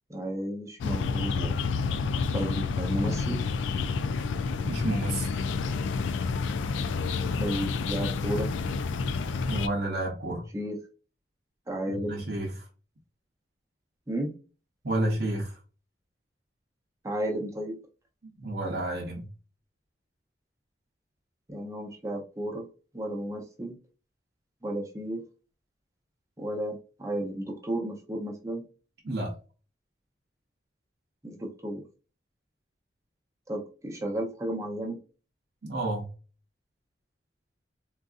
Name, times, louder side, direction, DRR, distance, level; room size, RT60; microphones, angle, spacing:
voice 1, 0.1-1.6 2.3-3.4 7.4-8.5 10.5-10.8 11.7-12.2 14.1-14.3 17.0-17.8 21.5-22.6 22.9-23.8 24.6-25.2 26.4-28.7 31.2-31.8 33.5-35.0, right 1 dB, 15° right, 0.6 m, -33 dB
sound 1, 0.8-9.7, left 4 dB, 85° left, 0.3 m, -29 dB
voice 2, 4.6-5.3 9.4-10.5 11.9-12.7 14.8-15.6 18.2-19.3 29.0-29.4 35.6-36.1, right 1 dB, 60° right, 0.7 m, -30 dB
3.8 x 2.5 x 2.4 m
head